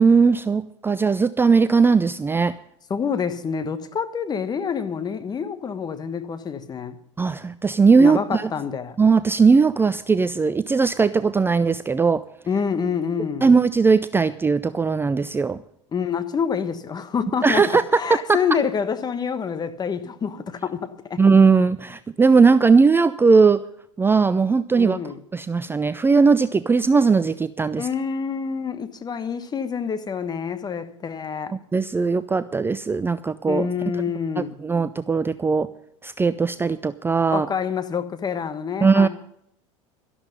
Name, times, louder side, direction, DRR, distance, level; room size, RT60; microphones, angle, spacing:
voice 1, 0.0-2.5 7.2-8.5 9.0-12.2 13.4-15.6 17.4-18.0 18.3-18.4 21.2-23.6 24.0-25.0 25.3-27.9 31.7-33.7 34.4-35.7 36.0-37.5 38.8-39.1, right 4 dB, 15° right, 0.5 m, -18 dB
voice 2, 2.9-6.9 8.0-9.0 12.5-13.5 15.9-21.2 24.8-25.2 27.8-31.5 33.5-34.5 37.3-39.1, left 6 dB, 25° left, 1.3 m, -27 dB
13.0 x 12.0 x 5.3 m
hypercardioid pair, 80°, 16 cm